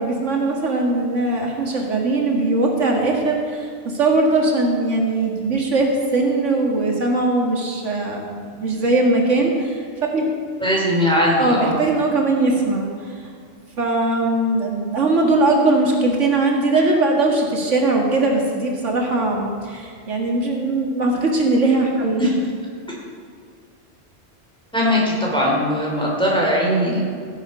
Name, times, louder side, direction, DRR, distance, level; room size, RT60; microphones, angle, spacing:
voice 1, 0.0-3.7 4.0-8.3 8.6-9.8 10.1-10.3 11.4-12.9 13.8-22.2, right 2 dB, 90° right, 0 dB, 2.1 m, -20 dB
voice 2, 10.6-11.8 22.2-22.4 24.7-27.0, equal, 5° left, -4 dB, 3.1 m, -19 dB
15.5 x 7.7 x 5.5 m, 2.2 s
omnidirectional pair, 1.2 m